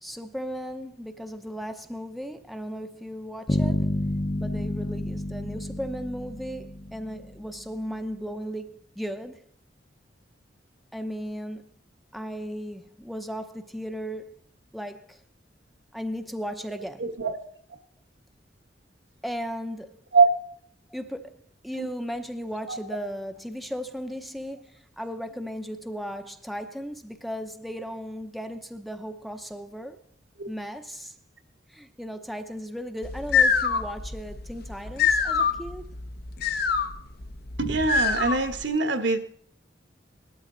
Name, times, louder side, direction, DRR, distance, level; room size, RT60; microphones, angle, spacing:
voice 1, 0.0-3.9 4.4-9.4 10.9-11.7 12.1-14.4 14.7-15.2 15.9-17.1 19.2-20.0 20.9-30.0 30.5-31.1 31.7-35.9, equal, ahead, 0.8 m, -36 dB
sound 1, 3.5-7.5, left 1 dB, 25° left, 1.0 m, -29 dB
voice 2, 17.0-17.3 20.1-20.3 21.8-21.9 22.7-22.8 30.4-30.5 37.6-39.2, right 4 dB, 70° right, 1.4 m, -23 dB
sound 2, 33.0-38.6, left 5 dB, 60° left, 1.2 m, -25 dB
18.5 x 12.5 x 4.0 m
head